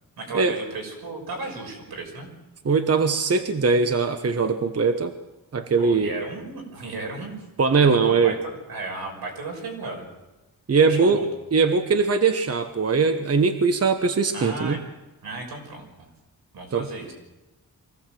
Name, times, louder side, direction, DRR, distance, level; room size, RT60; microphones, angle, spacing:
voice 1, 0.2-2.3 5.8-7.4 8.0-10.1 10.9-11.3 14.3-14.8 15.2-16.1 16.5-17.1, right 3 dB, 85° right, 2 dB, 6.1 m, -34 dB
voice 2, 2.6-5.1 5.5-6.1 7.6-8.4 10.7-11.2 11.5-14.8 16.7-16.9, right 4 dB, 40° right, 8 dB, 1.3 m, -21 dB
24.0 x 17.0 x 7.7 m, 1.1 s
cardioid pair, 95°, 36 cm